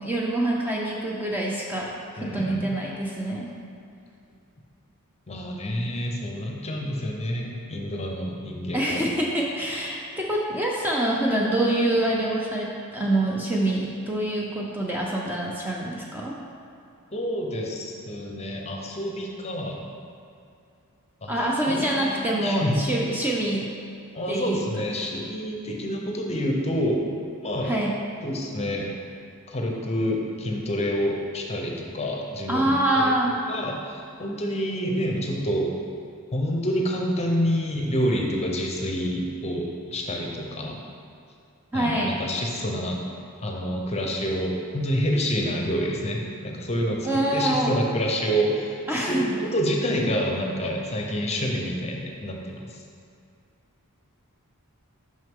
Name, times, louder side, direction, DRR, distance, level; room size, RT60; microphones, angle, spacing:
voice 1, 0.0-1.9 2.2-3.5 8.7-16.3 21.3-23.7 24.3-24.7 27.6-28.0 32.5-33.3 41.7-42.2 47.0-47.8 48.9-49.3, right 1 dB, 10° right, -3 dB, 0.5 m, -25 dB
voice 2, 2.2-2.7 5.3-9.1 17.1-19.9 21.2-22.8 24.1-27.0 27.4-27.7 28.2-28.9 29.5-33.1 33.5-35.7 36.3-40.8 41.7-43.0 43.4-52.8, equal, 30° left, 0 dB, 0.7 m, -28 dB
6.2 x 5.6 x 3.6 m, 2.5 s
head